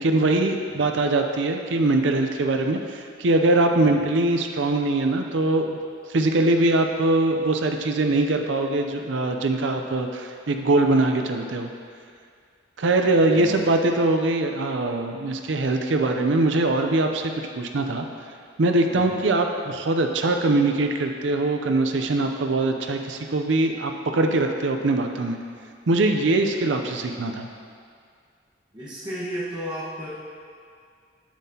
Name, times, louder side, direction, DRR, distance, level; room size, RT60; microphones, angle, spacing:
voice 1, 0.0-5.8 6.1-11.7 12.8-18.1 18.6-25.4 25.9-27.5, right 2 dB, 75° right, 4 dB, 0.5 m, -22 dB
voice 2, 13.0-13.7 18.9-19.2 28.7-30.1, equal, 25° right, -11 dB, 1.3 m, -35 dB
7.5 x 7.2 x 2.8 m, 2.2 s
head